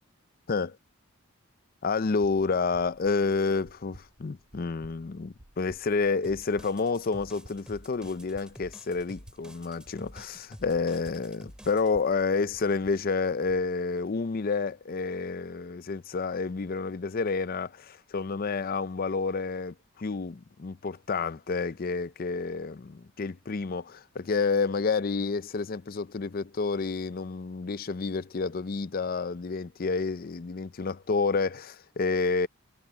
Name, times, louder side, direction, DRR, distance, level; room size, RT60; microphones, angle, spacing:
voice 1, 1.8-32.5, left 4 dB, 40° left, 0.5 m, -29 dB
sound 1, 2.7-13.7, equal, 40° right, 1.5 m, -55 dB
sound 2, 6.2-11.9, equal, 5° right, 2.1 m, -50 dB
head